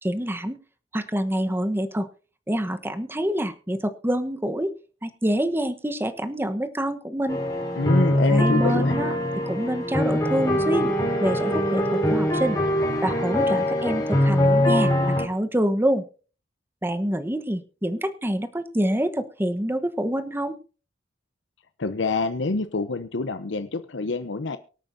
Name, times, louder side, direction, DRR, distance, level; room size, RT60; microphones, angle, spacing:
voice 1, 0.0-0.6 0.9-2.1 2.5-4.7 5.0-7.4 8.3-9.1 9.5-10.9 11.2-12.6 13.0-16.0 16.8-20.6, right 1 dB, 10° right, 9 dB, 1.0 m, -26 dB
sound 1, 7.3-15.2, left 1 dB, 20° left, 4.2 m, -23 dB
voice 2, 7.8-9.0 21.8-24.6, left 3 dB, 70° left, 11 dB, 0.7 m, -26 dB
24.0 x 8.9 x 2.7 m, 0.36 s
head